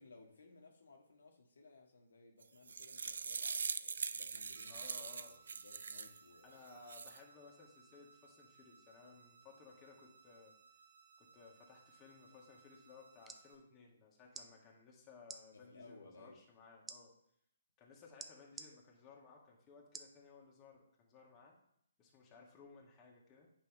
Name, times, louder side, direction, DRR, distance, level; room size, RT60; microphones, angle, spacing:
voice 1, 0.0-4.9 5.2-6.6 15.5-16.4, left 3 dB, 70° left, 1 dB, 1.5 m, -61 dB
sound 1, 2.4-6.2 6.7-7.2, right 5 dB, 65° right, 0.4 m, -42 dB
sound 2, 4.5-13.5, right 6 dB, 45° right, 2.2 m, -65 dB
voice 2, 4.7-5.4 6.4-10.6 11.2-17.1 17.8-21.6 22.0-23.5, left 4 dB, 20° left, -2 dB, 1.9 m, -59 dB
sound 3, 13.0-13.4 14.3-14.5 15.2-15.4 16.9-17.0 18.2-18.7 19.9-20.2 20.7-20.8, right 4 dB, 10° right, 0.5 m, -49 dB
9.0 x 5.4 x 3.6 m, 0.73 s
figure-of-eight pair, 135°, 0 cm